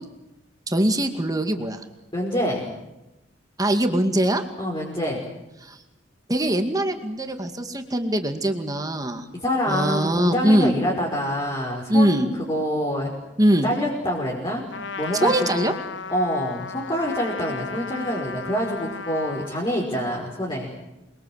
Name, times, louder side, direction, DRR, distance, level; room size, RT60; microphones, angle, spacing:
voice 1, 0.7-1.8 3.6-4.4 5.6-5.8 6.3-9.3 9.7-10.8 11.9-12.3 13.4-13.7 15.1-15.7, right 1 dB, 20° right, 6 dB, 2.2 m, -22 dB
voice 2, 2.1-2.7 4.6-5.2 9.3-13.1 13.6-14.7 15.0-15.7 16.1-20.7, equal, 25° left, -3 dB, 5.6 m, -26 dB
Trumpet, 14.7-19.6, left 4 dB, 75° left, 1.3 m, -35 dB
28.5 x 23.0 x 8.1 m, 0.95 s
head